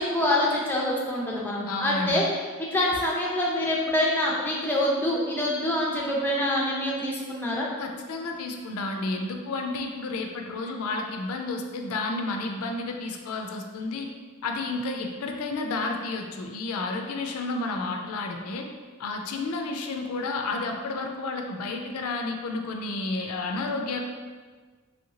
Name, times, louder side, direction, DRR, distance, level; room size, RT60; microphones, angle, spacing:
voice 1, 0.0-2.2 2.6-7.7, left 1 dB, 10° left, -4 dB, 0.4 m, -26 dB
voice 2, 1.7-2.3 7.8-14.1 14.4-18.7 19.0-24.0, left 3 dB, 75° left, 3 dB, 0.4 m, -31 dB
3.1 x 2.8 x 2.7 m, 1.5 s
head